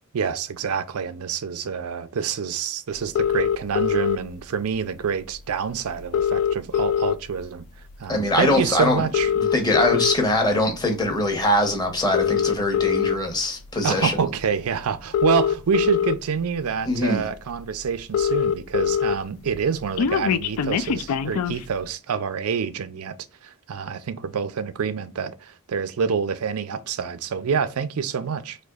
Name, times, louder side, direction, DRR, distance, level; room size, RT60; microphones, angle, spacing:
voice 1, 0.1-7.7 8.0-9.3 9.9-10.0 13.8-23.1 23.4-28.6, right 6 dB, 90° right, 0.4 m, -27 dB
sound 1, 3.2-4.2 5.3-5.4 5.7-5.8 6.0-7.4 7.9-8.1 9.0-10.1 10.9-11.1 12.0-13.2 14.4-14.5 15.0-16.1 16.8-16.9 17.2-17.3 17.6-17.7 17.8-19.1 19.5-21.6, left 8 dB, 85° left, 0.4 m, -22 dB
voice 2, 8.1-9.0 9.4-14.2 16.8-17.2, left 1 dB, 20° left, 1.0 m, -22 dB
4.2 x 2.7 x 2.3 m
head